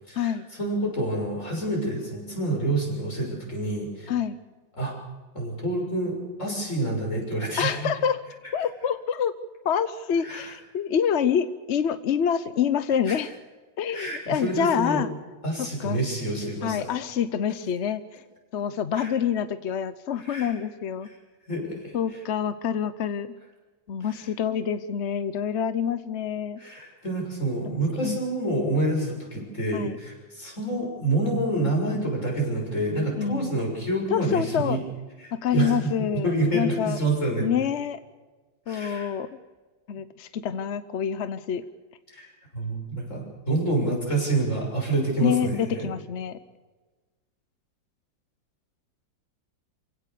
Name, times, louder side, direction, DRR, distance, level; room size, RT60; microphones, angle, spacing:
voice 1, 0.1-4.1 4.8-4.9 5.3-7.9 10.2-10.5 13.1-13.2 13.9-15.0 15.4-16.9 18.9-19.1 20.2-20.5 21.1-21.2 21.5-22.0 24.0-24.2 26.6-34.8 35.2-37.5 38.7-39.1 42.1-45.9, right 2 dB, 40° left, -1 dB, 6.8 m, -28 dB
voice 2, 7.6-8.2 8.5-9.3 9.6-13.3 13.8-15.1 15.6-16.0 16.6-18.2 18.5-21.1 21.9-23.3 23.9-26.6 27.6-28.2 29.7-30.0 33.2-33.6 34.1-34.8 35.3-37.0 37.4-38.0 38.7-39.4 39.9-41.6 45.2-46.4, left 8 dB, 55° left, 13 dB, 0.8 m, -27 dB
27.5 x 16.5 x 6.9 m, 1.3 s
omnidirectional pair, 2.0 m